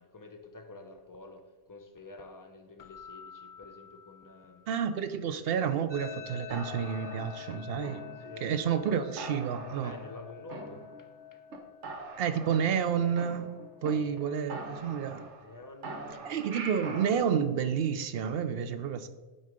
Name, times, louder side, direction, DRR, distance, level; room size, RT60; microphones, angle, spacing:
voice 1, 0.0-4.6 8.2-8.5 9.8-11.4 13.8-14.2 15.4-16.3 18.6-18.8, left 2 dB, 25° left, 0.5 m, -49 dB
Keyboard (musical), 2.8-5.2, left 6 dB, 75° left, 0.8 m, -52 dB
voice 2, 4.7-8.0 8.4-9.9 12.2-13.5 13.8-15.2 16.2-19.1, right 7 dB, 65° right, 0.7 m, -30 dB
sound 1, 5.9-14.9, left 9 dB, 40° right, 1.7 m, -48 dB
sound 2, 6.5-8.5 8.8-8.9 9.2-10.2 10.5-11.2 11.5-11.6 11.8-13.9 14.2-14.3 14.5-15.5 15.8-17.2, right 3 dB, 85° right, 1.3 m, -43 dB
9.1 x 3.8 x 5.1 m
omnidirectional pair, 1.2 m